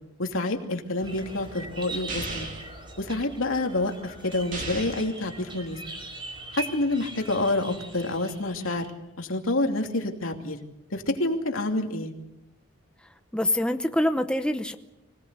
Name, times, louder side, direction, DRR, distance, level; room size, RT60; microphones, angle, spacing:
voice 1, 0.2-2.5 3.0-5.8 6.5-8.9 9.2-10.6 10.9-12.1, left 2 dB, 90° left, 3 dB, 2.8 m, -28 dB
sound 1, 1.0-8.9, right 2 dB, 25° right, 4.7 m, -41 dB
sound 2, 2.1-2.7 4.5-5.1, right 3 dB, 40° right, 2.8 m, -35 dB
voice 2, 13.3-14.8, left 1 dB, 5° left, 7 dB, 0.8 m, -25 dB
25.5 x 17.5 x 8.3 m, 0.90 s
head